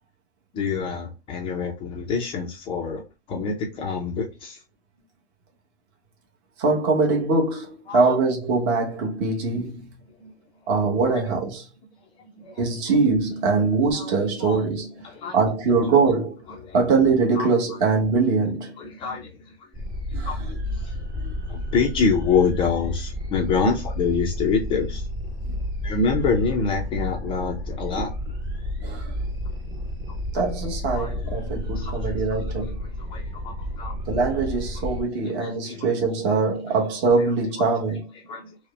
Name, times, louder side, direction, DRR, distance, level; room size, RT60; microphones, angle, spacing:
voice 1, 0.5-3.0 3.3-4.6 7.9-8.2 10.2-10.3 11.1-11.2 12.4-12.7 13.9-14.6 15.0-15.4 16.5-16.8 17.3-17.5 18.8-19.7 20.2-20.9 21.5-25.1 25.8-28.1 30.3-30.4 30.9-34.0 35.2-36.0 36.3-36.4 36.7-36.8 37.6-37.7 38.2-38.6, left 5 dB, 15° left, 0.4 m, -27 dB
voice 2, 6.6-9.9 10.7-11.7 12.6-14.9 15.3-16.4 16.7-18.7 20.1-20.3 21.2-21.3 25.5-25.6 28.0-28.1 28.8-29.1 30.3-32.8 34.1-38.1, right 4 dB, 30° right, 1.1 m, -22 dB
sound 1, 19.7-35.0, left 1 dB, 10° right, 0.7 m, -31 dB
4.7 x 2.1 x 3.1 m
hypercardioid pair, 140°, 34 cm